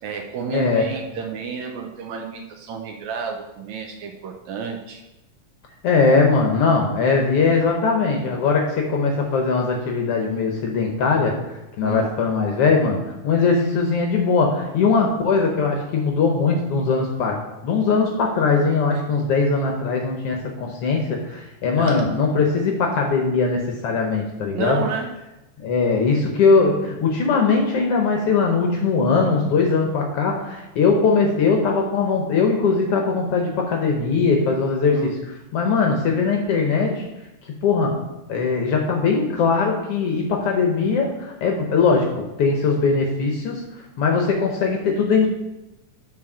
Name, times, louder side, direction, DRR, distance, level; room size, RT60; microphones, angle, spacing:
voice 1, 0.0-5.0 11.8-12.1 21.8-22.0 24.5-25.1 34.9-35.1, right 6 dB, 80° right, 4 dB, 1.8 m, -30 dB
voice 2, 0.5-0.8 5.8-24.8 25.6-35.2 35.5-37.0 37.6-38.0 38.3-42.1 42.4-43.6 44.0-45.3, left 4 dB, 70° left, 1 dB, 1.4 m, -20 dB
6.2 x 4.3 x 6.0 m, 0.97 s
omnidirectional pair, 3.6 m